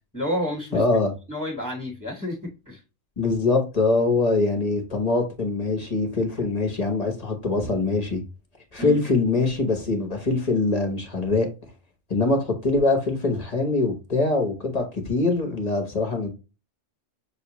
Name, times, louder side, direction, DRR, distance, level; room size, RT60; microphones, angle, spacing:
voice 1, 0.1-0.8 1.3-2.4 2.7-2.8 8.8-9.0, equal, 15° left, 1.2 m, -29 dB
voice 2, 0.7-1.1 3.2-8.2 8.7-11.5 12.1-16.3, left 3 dB, 35° left, 0.9 m, -23 dB
6.1 x 2.3 x 2.9 m
omnidirectional pair, 1.3 m